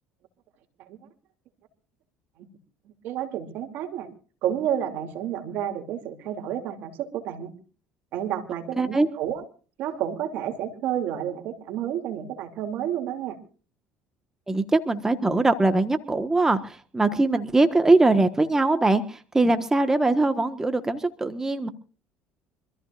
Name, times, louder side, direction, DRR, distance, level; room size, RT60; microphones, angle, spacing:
voice 1, 2.8-4.1 4.4-7.5 8.1-9.4 9.8-13.4, right 10 dB, 65° right, 6 dB, 2.9 m, -30 dB
voice 2, 8.8-9.1 14.5-21.7, right 2 dB, 15° right, 9 dB, 1.4 m, -22 dB
26.0 x 14.5 x 2.5 m, 0.38 s
supercardioid pair, 85°, 3 cm